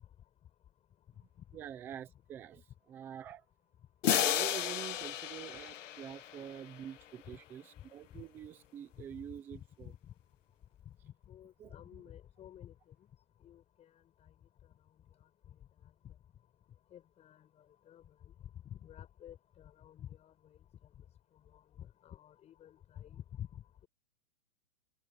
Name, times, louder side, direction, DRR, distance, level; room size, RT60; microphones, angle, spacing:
voice 1, 1.5-2.6 2.9-3.4 4.1-9.9 11.6-12.0, right 9 dB, 5° right, 0.5 m, -46 dB
sound 1, 4.0-6.9, left 11 dB, 60° left, 1.2 m, -33 dB
voice 2, 11.0-12.7 13.4-13.6 16.0-16.1 16.9-17.4 17.9-18.0 18.6-20.3 21.8-23.6, left 10 dB, 15° left, 6.4 m, -50 dB
open air
hypercardioid pair, 160°, 42 cm